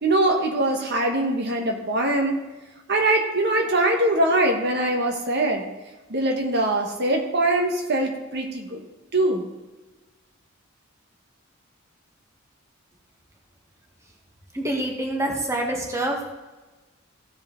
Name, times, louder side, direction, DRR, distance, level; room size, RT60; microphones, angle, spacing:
voice 1, 0.0-2.4 2.9-5.6 6.1-8.8 9.1-9.4, right 1 dB, 55° right, 2 dB, 1.3 m, -22 dB
voice 2, 14.5-16.3, right 1 dB, 15° right, 0 dB, 1.4 m, -26 dB
15.5 x 5.3 x 3.8 m, 1.2 s
head